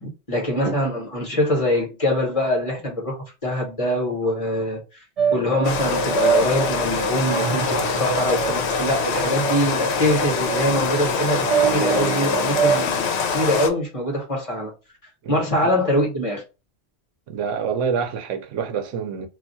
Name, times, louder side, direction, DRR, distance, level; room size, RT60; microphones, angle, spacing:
voice 1, 0.0-3.2 3.4-5.0 5.3-14.7 15.3-16.4, left 1 dB, 30° left, 0.9 m, -23 dB
sound 1, 5.2-12.9, right 6 dB, 40° right, 0.6 m, -25 dB
Rain, 5.6-13.7, left 5 dB, 70° left, 0.8 m, -25 dB
voice 2, 15.2-15.7 17.3-19.3, right 6 dB, 90° right, 1.0 m, -27 dB
2.4 x 2.3 x 4.0 m
omnidirectional pair, 1.2 m